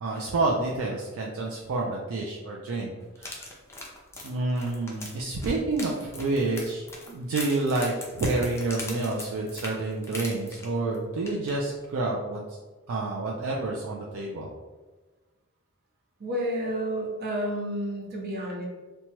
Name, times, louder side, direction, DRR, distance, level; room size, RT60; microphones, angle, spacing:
voice 1, 0.0-3.5 4.2-7.9 8.2-12.6 12.9-14.5, right 2 dB, 65° right, -2 dB, 0.4 m, -29 dB
sound 1, 3.1-10.9 11.3-11.5 11.8-11.9, left 2 dB, 10° left, 0.4 m, -40 dB
voice 2, 16.2-18.7, equal, 45° right, -3 dB, 0.7 m, -30 dB
2.9 x 2.2 x 2.8 m, 1.3 s
head